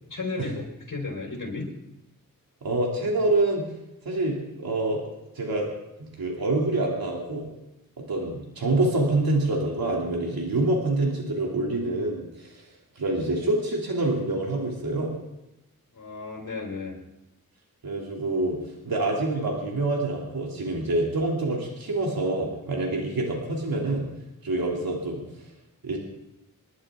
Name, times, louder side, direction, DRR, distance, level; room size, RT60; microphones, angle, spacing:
voice 1, 0.1-0.6 0.9-1.7 15.9-17.0, left 3 dB, 65° left, -1 dB, 5.2 m, -33 dB
voice 2, 2.6-3.6 4.0-5.0 5.3-5.7 6.2-7.5 8.1-12.7 12.9-15.1 17.8-18.6 18.8-24.1 24.4-25.2 25.8-26.0, right 2 dB, 85° right, -2 dB, 2.9 m, -26 dB
28.0 x 11.5 x 3.7 m, 0.90 s
wide cardioid pair, 70°, 35 cm